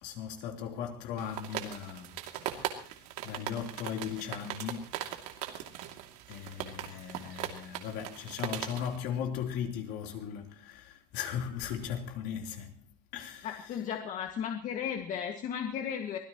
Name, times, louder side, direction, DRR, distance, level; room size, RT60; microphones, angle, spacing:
voice 1, 0.0-2.1 2.5-2.7 3.2-4.9 6.3-12.8 13.1-13.5, left 8 dB, 60° left, 3.7 m, -37 dB
sound 1, 1.2-9.0, right 12 dB, 85° right, 2.8 m, -40 dB
voice 2, 13.4-16.2, left 8 dB, 40° left, 2.0 m, -35 dB
24.5 x 16.5 x 3.1 m
cardioid pair, 145°, 19 cm